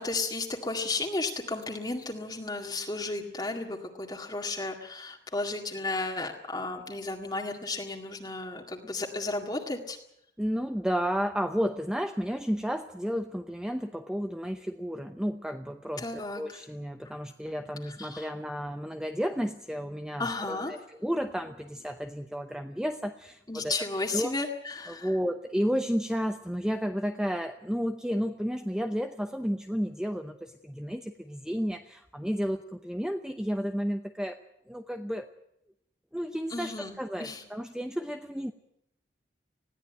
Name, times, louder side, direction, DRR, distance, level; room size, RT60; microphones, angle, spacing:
voice 1, 0.0-10.0 16.0-16.6 17.8-18.3 20.2-20.7 23.5-25.1 36.5-37.4, left 3 dB, 20° left, 1 dB, 2.0 m, -34 dB
voice 2, 10.4-23.7 24.1-24.3 24.9-34.4 34.7-35.3 36.1-38.5, equal, 5° right, 6 dB, 0.8 m, -32 dB
20.5 x 16.0 x 8.9 m, 0.78 s
head